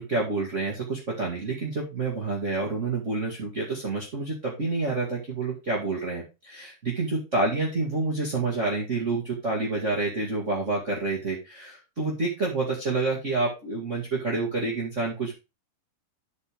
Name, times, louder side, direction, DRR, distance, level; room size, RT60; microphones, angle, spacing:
voice 1, 0.0-15.3, right 3 dB, 35° right, -3 dB, 1.1 m, -28 dB
12.0 x 4.5 x 3.4 m, 0.28 s
omnidirectional pair, 4.4 m